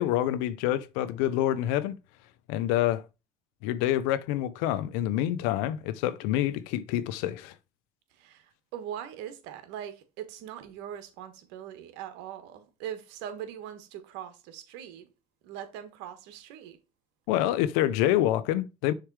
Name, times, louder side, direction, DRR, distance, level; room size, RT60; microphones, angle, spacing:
voice 1, 0.0-1.9 2.5-3.0 3.6-7.5 17.3-18.9, left 13 dB, 90° left, 0.6 m, -27 dB
voice 2, 8.7-15.1 15.4-16.8, right 10 dB, 85° right, 1.3 m, -41 dB
6.6 x 3.3 x 4.7 m
supercardioid pair, 85°, 18 cm